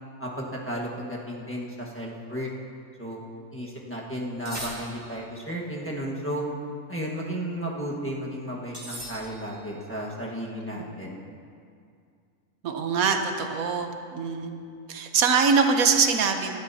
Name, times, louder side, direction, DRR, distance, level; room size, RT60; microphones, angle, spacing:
voice 1, 0.2-2.5 3.0-3.2 3.5-6.4 6.9-11.2, equal, 10° left, -4 dB, 1.4 m, -33 dB
sound 1, 4.5-5.4 8.7-9.7, equal, 15° right, 2.5 m, -39 dB
voice 2, 12.6-14.6 14.9-16.5, right 5 dB, 90° right, 5 dB, 1.4 m, -23 dB
18.0 x 12.5 x 2.8 m, 2.3 s
omnidirectional pair, 1.4 m